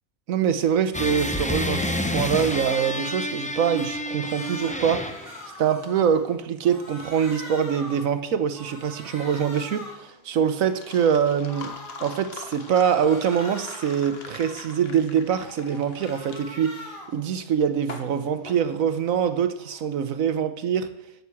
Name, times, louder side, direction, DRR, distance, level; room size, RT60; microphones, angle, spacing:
voice 1, 0.3-5.1 5.6-16.8 17.1-20.9, right 8 dB, 70° right, 1.2 m, -24 dB
sound 1, 0.9-5.4, left 1 dB, 10° left, 0.5 m, -29 dB
Crying sobbing, 1.4-1.6 1.9-3.1 3.6-6.4 6.6-8.2 8.5-10.1 10.5-12.1 12.5-14.9 15.3-17.2 17.6-20.0, left 1 dB, 10° right, 5.6 m, -44 dB
sound 2, 9.7-19.4, left 4 dB, 45° left, 1.5 m, -43 dB
12.0 x 6.8 x 8.3 m
omnidirectional pair, 1.5 m